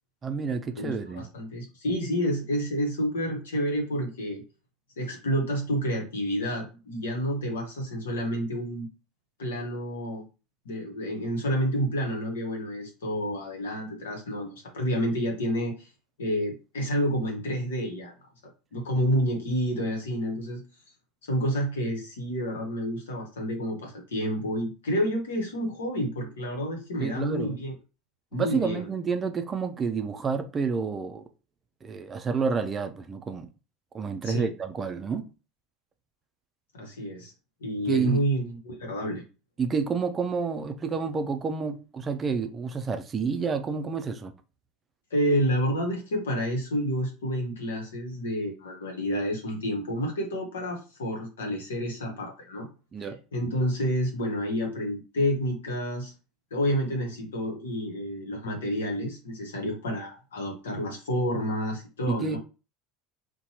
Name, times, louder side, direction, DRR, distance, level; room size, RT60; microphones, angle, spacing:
voice 1, 0.2-1.2 27.0-27.6 28.3-31.2 31.8-33.5 33.9-35.3 37.9-38.3 39.6-44.3 52.9-53.2 62.1-62.4, right 5 dB, 30° right, 0.4 m, -29 dB
voice 2, 0.7-4.4 5.0-8.9 9.4-10.2 10.6-15.9 16.2-18.1 18.7-20.6 21.3-27.7 28.3-28.9 34.2-34.5 36.7-37.3 37.6-39.2 45.1-52.7 53.3-56.1 56.5-62.4, equal, 80° left, 0.9 m, -29 dB
2.6 x 2.2 x 2.8 m
hypercardioid pair, 80°, 0 cm